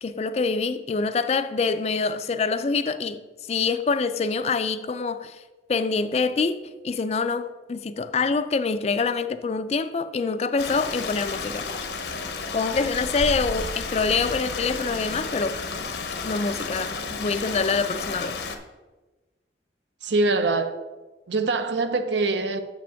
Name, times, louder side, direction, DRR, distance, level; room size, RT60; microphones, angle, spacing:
voice 1, 0.0-3.2 3.5-5.4 5.7-11.7 12.5-15.6 16.2-18.4, left 4 dB, 35° left, 0.3 m, -25 dB
Stream, 10.6-18.6, left 4 dB, 70° left, 0.8 m, -32 dB
voice 2, 20.0-20.8 21.3-22.6, right 3 dB, 80° right, 0.7 m, -23 dB
7.1 x 5.1 x 5.6 m
head